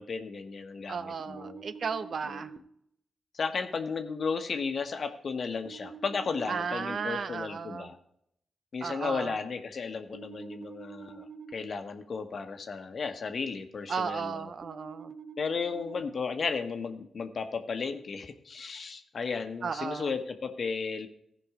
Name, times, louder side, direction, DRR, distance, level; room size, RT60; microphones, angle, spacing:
voice 1, 0.0-1.6 2.2-2.4 3.3-8.0 8.7-11.3 11.5-14.5 15.4-21.1, left 5 dB, 60° left, 7 dB, 1.2 m, -34 dB
voice 2, 0.9-2.5 6.5-7.9 8.8-9.3 13.9-15.1 19.6-20.1, right 5 dB, 65° right, 12 dB, 0.7 m, -34 dB
sound 1, 1.2-2.6 5.7-7.0 10.1-11.5 14.6-16.0, right 6 dB, 40° right, 1.2 m, -46 dB
15.0 x 5.3 x 4.9 m, 0.75 s
supercardioid pair, 50°, 0 cm